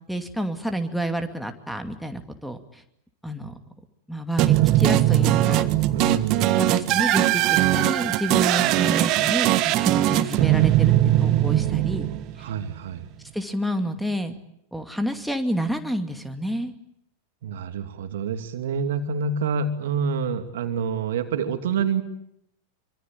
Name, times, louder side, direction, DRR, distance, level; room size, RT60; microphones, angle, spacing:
voice 1, 0.1-2.8 3.2-3.5 4.1-5.7 6.6-12.1 12.4-12.5 13.3-14.4 14.7-16.7, equal, ahead, 7 dB, 2.5 m, -29 dB
sound 1, 4.4-12.6, right 14 dB, 40° right, 1.5 m, -20 dB
voice 2, 5.9-7.0 12.4-13.1 17.4-22.0, right 6 dB, 60° right, 8 dB, 2.7 m, -27 dB
25.5 x 25.0 x 8.9 m, 0.76 s
figure-of-eight pair, 90°, 0 cm